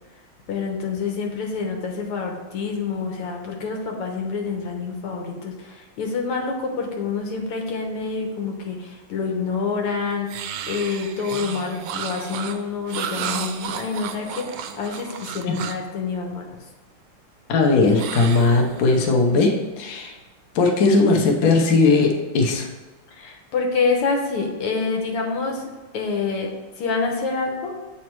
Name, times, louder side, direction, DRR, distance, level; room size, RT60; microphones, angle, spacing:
voice 1, 0.5-16.5 23.1-25.7 25.9-26.5 26.8-27.7, left 4 dB, 85° left, 2 dB, 2.0 m, -27 dB
sound 1, 10.3-15.9 18.0-19.1, right 8 dB, 75° right, 1.1 m, -33 dB
voice 2, 17.5-20.1 20.5-22.7, left 3 dB, 55° left, 2 dB, 1.1 m, -18 dB
7.6 x 4.2 x 4.5 m, 1.2 s
omnidirectional pair, 2.4 m